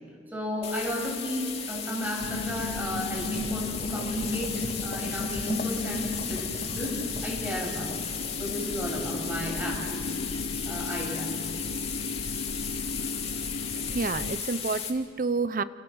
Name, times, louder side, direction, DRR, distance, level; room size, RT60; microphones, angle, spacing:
voice 1, 0.3-7.9 8.4-10.2 10.7-11.3, equal, 10° right, -1 dB, 7.6 m, -33 dB
sound 1, 0.6-14.9, left 7 dB, 35° left, 2.7 m, -35 dB
sound 2, 2.2-14.4, left 3 dB, 70° left, 0.9 m, -36 dB
sound 3, 3.2-9.5 9.9-10.0, left 1 dB, 50° left, 2.0 m, -39 dB
voice 2, 13.7-15.6, right 4 dB, 50° right, 14 dB, 0.8 m, -29 dB
29.0 x 28.5 x 6.4 m, 2.3 s
head